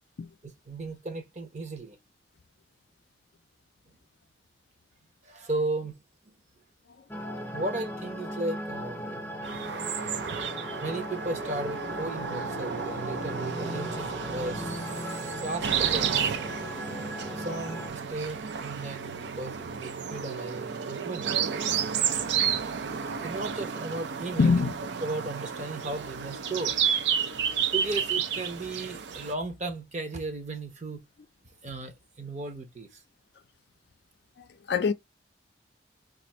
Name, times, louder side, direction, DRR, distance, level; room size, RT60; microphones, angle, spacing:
voice 1, 0.4-2.0 5.2-6.0 6.2-6.3 7.5-9.2 10.8-17.0 17.4-21.4 22.9-24.6 25.0-26.8 27.7-31.0 31.6-33.0, right 2 dB, 40° right, 0.7 m, -35 dB
sound 1, 7.1-17.9, equal, 10° left, 0.5 m, -37 dB
sound 2, 9.4-29.3, right 7 dB, 70° right, 0.4 m, -31 dB
voice 2, 22.8-23.3 24.4-24.7 27.4-27.6 34.4-34.9, left 5 dB, 60° left, 0.4 m, -27 dB
2.5 x 2.5 x 4.1 m
head